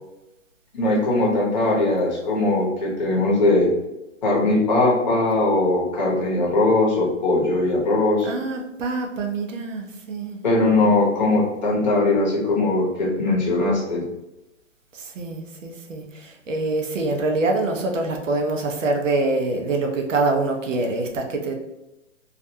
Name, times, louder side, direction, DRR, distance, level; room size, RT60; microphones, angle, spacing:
voice 1, 0.7-3.7 4.2-8.3 10.4-14.0, left 2 dB, 35° left, -4 dB, 0.8 m, -20 dB
voice 2, 8.3-10.4 10.8-10.9 15.0-21.5, right 2 dB, 70° right, 2 dB, 0.7 m, -25 dB
2.5 x 2.2 x 2.7 m, 0.95 s
hypercardioid pair, 160°, 39 cm